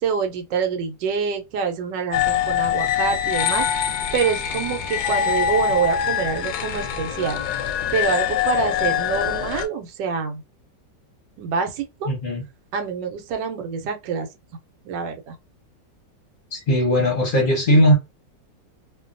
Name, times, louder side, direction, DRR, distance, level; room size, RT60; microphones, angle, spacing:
voice 1, 0.0-7.4 7.9-10.4 11.4-12.1 12.7-14.3 14.8-15.4, right 6 dB, 80° right, 1.3 m, -26 dB
sound 1, 2.1-9.7, left 8 dB, 70° left, 1.0 m, -24 dB
voice 2, 12.1-12.4 16.5-17.9, equal, 45° left, 0.7 m, -18 dB
3.0 x 2.2 x 2.5 m
omnidirectional pair, 1.9 m